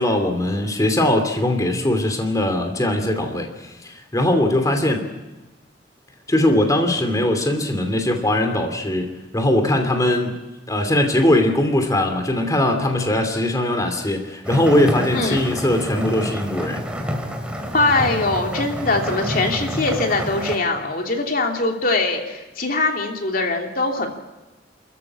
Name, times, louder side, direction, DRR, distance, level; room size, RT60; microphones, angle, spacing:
voice 1, 0.0-5.0 6.3-9.1 9.3-10.4 10.7-16.8, left 1 dB, 20° left, 4 dB, 2.7 m, -20 dB
sound 1, 14.4-20.6, equal, 5° right, 3.0 m, -28 dB
voice 2, 15.1-15.4 17.7-24.2, left 2 dB, 50° left, 2 dB, 2.9 m, -22 dB
29.5 x 14.5 x 8.8 m, 1.1 s
head